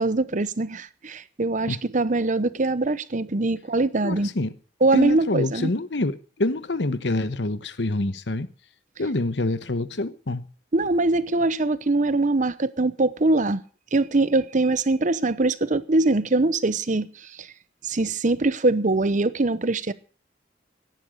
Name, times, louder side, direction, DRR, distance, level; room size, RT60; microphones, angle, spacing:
voice 1, 0.0-4.3 4.8-5.7 10.7-13.6 13.9-17.5 17.8-19.9, right 2 dB, 45° right, 0.8 m, -22 dB
voice 2, 4.0-4.5 4.9-8.5 9.0-10.4, left 2 dB, 80° left, 1.1 m, -26 dB
17.0 x 10.5 x 6.5 m
head